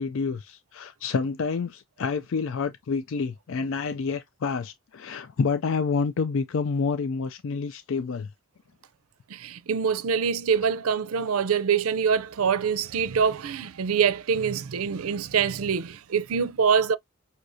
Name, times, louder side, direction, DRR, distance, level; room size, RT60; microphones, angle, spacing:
voice 1, 0.0-8.3, left 5 dB, 65° left, 0.4 m, -28 dB
voice 2, 9.3-17.0, right 6 dB, 80° right, 0.5 m, -25 dB
6.2 x 2.8 x 2.6 m
head